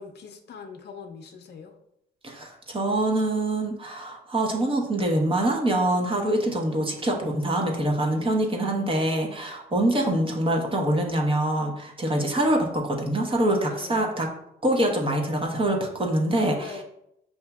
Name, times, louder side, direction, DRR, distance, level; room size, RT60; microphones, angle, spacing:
voice 1, 0.0-1.7 8.2-8.8 13.7-14.1 16.6-16.8, left 5 dB, 55° left, 4 dB, 0.6 m, -42 dB
voice 2, 2.2-14.3 14.6-16.8, right 1 dB, 25° right, 1 dB, 1.0 m, -25 dB
6.9 x 2.7 x 2.3 m, 0.81 s
cardioid pair, 90°, 20 cm